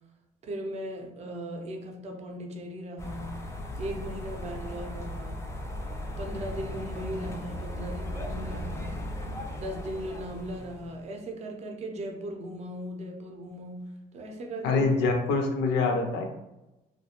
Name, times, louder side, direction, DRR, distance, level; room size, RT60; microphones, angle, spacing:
voice 1, 0.4-3.5 3.8-5.4 6.1-9.1 9.6-14.8, equal, 40° right, 3 dB, 0.5 m, -38 dB
sound 1, 3.0-11.0, left 1 dB, 15° left, 0.4 m, -37 dB
voice 2, 14.6-16.2, left 3 dB, 85° left, 3 dB, 0.6 m, -25 dB
2.4 x 2.2 x 2.8 m, 0.99 s
cardioid pair, 110°, 17 cm